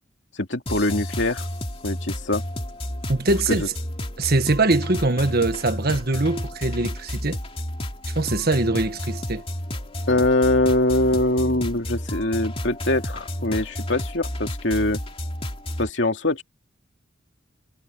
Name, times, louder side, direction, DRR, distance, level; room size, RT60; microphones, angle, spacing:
voice 1, 0.4-1.4 1.8-2.4 3.5-3.7 10.1-15.0 15.8-16.4, left 2 dB, 60° left, 2.7 m, -23 dB
sound 1, 0.7-15.9, left 1 dB, 30° left, 2.7 m, -31 dB
voice 2, 3.1-3.7 4.2-7.4 8.1-9.4, right 2 dB, 50° right, 1.6 m, -22 dB
head